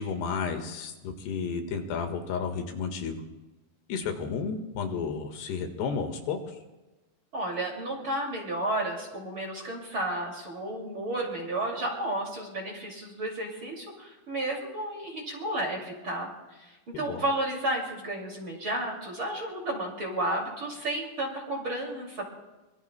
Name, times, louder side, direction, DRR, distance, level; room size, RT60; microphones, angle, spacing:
voice 1, 0.0-3.2 3.9-6.6 16.9-17.2, left 5 dB, 85° left, 5 dB, 3.6 m, -32 dB
voice 2, 7.3-16.3 16.6-22.2, right 1 dB, 35° right, -1 dB, 2.7 m, -32 dB
25.0 x 23.0 x 2.2 m, 1.1 s
omnidirectional pair, 4.6 m